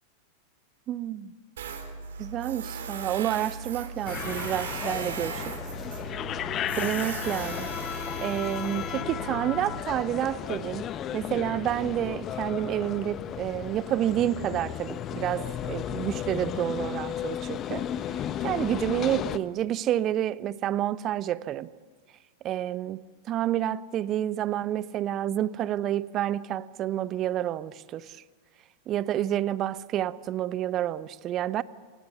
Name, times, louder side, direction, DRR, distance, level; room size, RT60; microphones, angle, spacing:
voice 1, 0.9-1.3 2.2-5.4 6.8-17.8 18.1-21.7 22.4-23.0 23.3-28.2 28.9-31.6, right 12 dB, 35° right, 0.9 m, -29 dB
Tools, 1.6-9.8, right 5 dB, 60° right, 4.1 m, -38 dB
sound 1, 4.1-19.4, left 10 dB, 30° left, 1.0 m, -34 dB
29.0 x 26.0 x 7.0 m
figure-of-eight pair, 90°, 0 cm